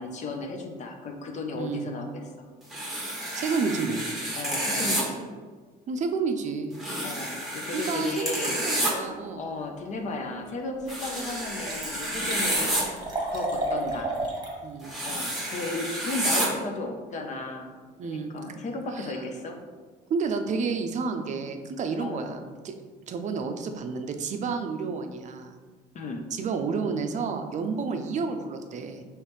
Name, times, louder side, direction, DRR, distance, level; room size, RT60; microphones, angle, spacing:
voice 1, 0.0-2.1 2.4-2.5 4.3-5.4 7.0-8.5 9.3-13.0 13.3-14.1 15.0-17.7 18.0-19.6 22.0-22.3 25.9-26.3, left 3 dB, 45° left, 3 dB, 0.6 m, -34 dB
voice 2, 1.5-1.9 3.3-4.1 5.9-6.7 7.7-9.5 14.6-15.0 18.0-18.3 18.9-19.1 20.1-22.7 23.1-25.5 26.3-29.0, right 5 dB, 45° right, 6 dB, 0.5 m, -30 dB
sound 1, 2.7-5.0 6.8-8.9 10.9-12.8 14.8-16.5, right 1 dB, ahead, 1.1 m, -29 dB
Liquid, 10.5-10.6 11.0-11.1 11.3-14.6 14.9-15.0, right 2 dB, 25° right, 1.1 m, -32 dB
4.8 x 3.1 x 3.1 m, 1.4 s
cardioid pair, 110°, 17 cm